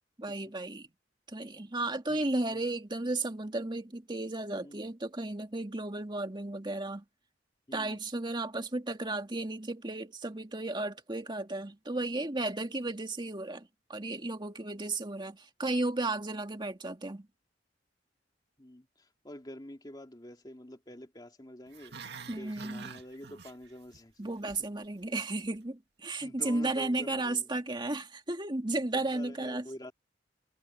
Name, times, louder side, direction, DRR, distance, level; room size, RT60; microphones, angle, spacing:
voice 1, 0.2-0.9 1.3-7.0 7.7-17.3 22.3-22.9 24.2-29.7, right 2 dB, 25° right, 1.9 m, -34 dB
voice 2, 7.7-8.0 18.6-21.9 22.4-24.1 26.2-27.5 28.9-29.9, left 1 dB, 20° left, 2.5 m, -47 dB
Growling, 21.7-24.0 24.2-24.6 25.0-25.1, right 5 dB, 60° right, 2.2 m, -47 dB
head